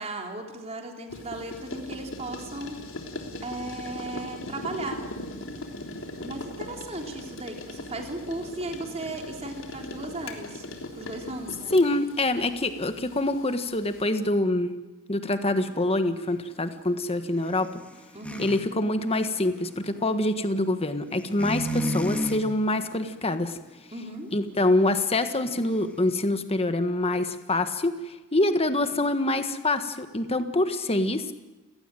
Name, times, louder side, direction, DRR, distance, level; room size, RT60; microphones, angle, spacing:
voice 1, 0.0-2.8 3.4-5.0 6.2-10.7 10.9-11.7 18.1-18.5 23.9-24.3, right 2 dB, 30° right, 2 dB, 3.5 m, -36 dB
sound 1, 1.1-14.0, left 1 dB, 60° left, 3.6 m, -39 dB
voice 2, 11.7-14.7 15.1-17.7 18.4-23.6 24.3-31.3, left 2 dB, 25° left, 9 dB, 1.5 m, -25 dB
sound 2, 15.6-18.6 19.0-20.3 21.2-22.4 22.7-23.3 23.6-23.9, equal, 5° left, 2.5 m, -32 dB
30.0 x 17.5 x 9.1 m, 1.1 s
head